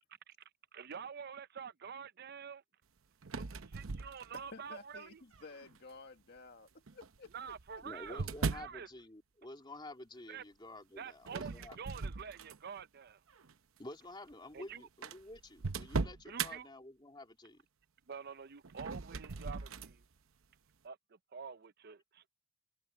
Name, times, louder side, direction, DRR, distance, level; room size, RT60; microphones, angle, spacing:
voice 1, 0.7-2.6 3.4-5.2 7.3-8.9 10.3-10.4 11.0-13.2 14.5-14.8 16.3-16.7 18.1-20.0 20.8-22.3, right 6 dB, 50° right, 0.6 m, -47 dB
sound 1, 3.2-4.7 5.3-5.8 6.9-8.8 11.3-12.8 13.3-13.5 14.3-14.4 14.6-14.7 15.0-16.5 18.6-19.9, right 4 dB, 90° right, 0.8 m, -39 dB
voice 2, 4.4-7.3, left 3 dB, 55° left, 1.6 m, -53 dB
voice 3, 7.8-11.8 13.8-17.6, left 1 dB, 25° left, 2.9 m, -50 dB
head